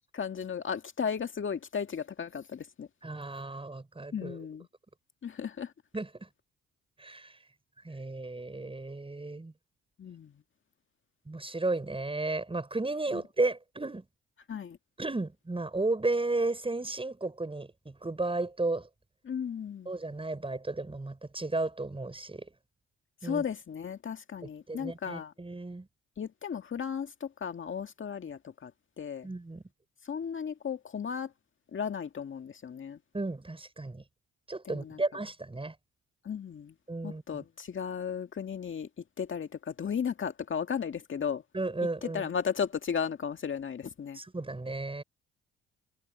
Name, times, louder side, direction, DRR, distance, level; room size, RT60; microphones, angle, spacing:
voice 1, 0.1-2.9 4.1-4.7 5.2-5.7 10.0-10.3 13.1-13.2 14.5-14.8 19.3-19.9 23.2-25.3 26.2-28.7 29.0-29.3 30.1-31.3 31.7-33.0 34.6-35.0 36.3-36.7 37.0-38.9 39.2-41.4 42.0-44.2, left 7 dB, 45° left, 2.0 m, -35 dB
voice 2, 3.0-4.5 5.9-6.1 7.0-7.4 7.8-9.5 11.3-14.0 15.0-18.9 19.9-22.5 23.2-23.4 24.7-25.9 29.2-29.6 33.1-34.0 34.5-35.7 36.9-37.4 41.5-42.3 44.1-45.0, right 2 dB, 20° right, 7.2 m, -33 dB
supercardioid pair, 60°, 29 cm